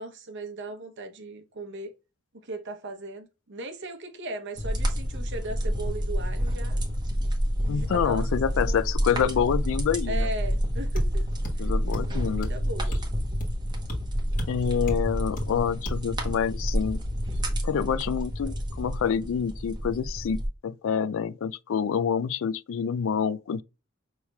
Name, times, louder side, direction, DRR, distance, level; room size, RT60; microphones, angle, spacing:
voice 1, 0.0-1.9 2.4-6.8 7.6-8.3 8.6-8.8 9.1-9.4 10.1-11.3 11.6-13.0, right 2 dB, 60° right, 0.9 m, -38 dB
sound 1, 4.6-20.5, equal, 20° right, 0.9 m, -29 dB
voice 2, 7.7-10.3 11.6-12.5 14.5-17.0 17.6-23.6, left 7 dB, 65° left, 0.3 m, -27 dB
sound 2, 11.0-11.1 11.4-11.6 11.9-12.1 12.4-12.6 12.9-13.1 13.4-13.6 13.9-14.0 14.4-14.5 14.9-15.0 15.4-15.5 15.9-16.0, equal, 40° left, 1.5 m, -31 dB
5.6 x 3.1 x 2.2 m
head